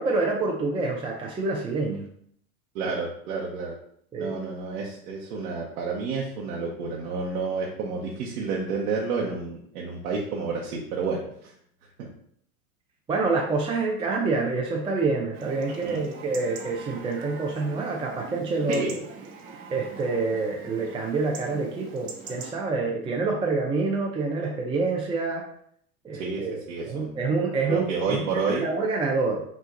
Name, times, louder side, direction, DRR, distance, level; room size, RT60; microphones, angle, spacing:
voice 1, 0.0-2.1 4.1-4.3 13.1-18.8 19.7-25.4 26.0-26.6 26.9-29.4, right 3 dB, 10° right, -1 dB, 0.5 m, -27 dB
voice 2, 2.7-3.7 4.2-11.5 12.0-12.1 15.8-16.0 18.7-18.9 26.1-27.2 27.7-28.7, right 4 dB, 75° right, -3 dB, 1.1 m, -30 dB
Chatter / Livestock farm animals working animals / Chirp tweet, 15.3-22.5, right 5 dB, 50° right, 1.0 m, -42 dB
5.6 x 2.5 x 3.8 m, 0.65 s
hypercardioid pair, 115°, 43 cm